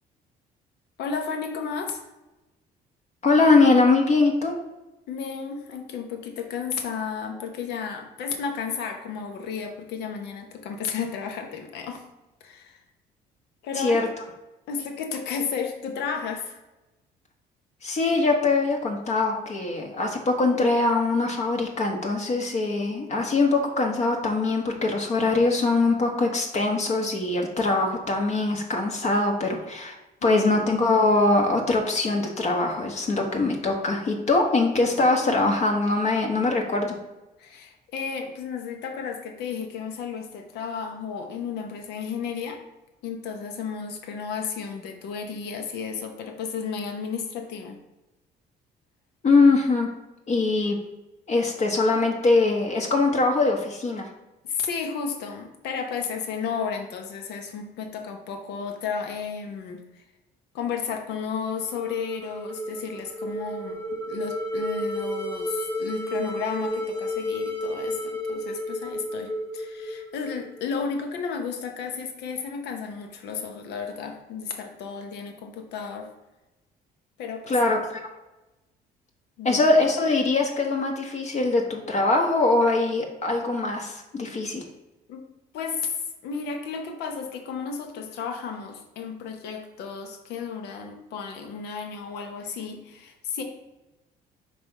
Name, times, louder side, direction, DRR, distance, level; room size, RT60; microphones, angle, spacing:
voice 1, 1.0-2.0 5.1-12.0 12.4-12.8 13.6-14.1 14.7-16.6 29.5-29.6 30.2-30.4 37.4-42.6 43.0-47.8 54.4-60.0 60.5-76.1 77.2-77.5 79.4-79.6 85.1-85.3 85.5-93.4, left 6 dB, 80° left, 4 dB, 1.0 m, -33 dB
voice 2, 3.2-4.5 13.8-14.1 17.8-29.9 30.2-37.0 49.2-49.9 50.3-50.8 51.3-54.1 77.5-78.0 79.4-84.6, left 3 dB, 40° left, 2 dB, 1.0 m, -22 dB
sound 1, 61.5-70.6, left 1 dB, 15° left, 1.1 m, -32 dB
5.2 x 3.4 x 5.3 m, 1.0 s
cardioid pair, 110°, 17 cm